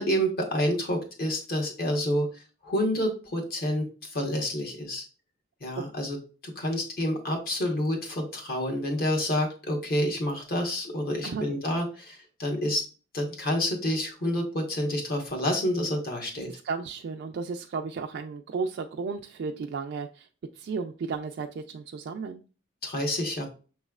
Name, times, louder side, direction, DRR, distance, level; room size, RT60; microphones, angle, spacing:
voice 1, 0.0-2.3 2.6-3.9 4.1-5.0 5.6-6.2 6.4-12.8 13.1-16.5 22.8-23.5, equal, 50° left, 2 dB, 1.2 m, -28 dB
voice 2, 16.4-20.3 20.6-22.4, right 5 dB, 55° right, 4 dB, 0.3 m, -34 dB
5.9 x 3.1 x 2.4 m, 0.35 s
head